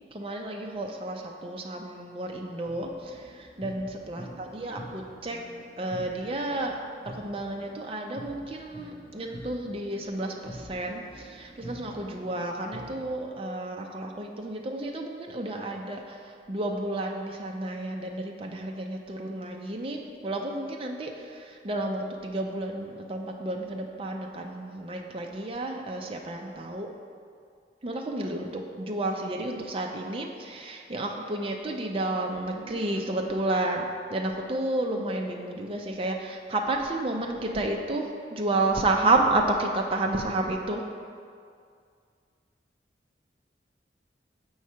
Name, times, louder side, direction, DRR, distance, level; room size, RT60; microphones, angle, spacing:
voice 1, 0.1-5.4 5.8-26.9 27.8-40.8, right 2 dB, 30° right, 1 dB, 0.5 m, -31 dB
sound 1, 2.6-13.1, equal, 15° left, 0.6 m, -46 dB
7.3 x 3.1 x 5.5 m, 2.2 s
head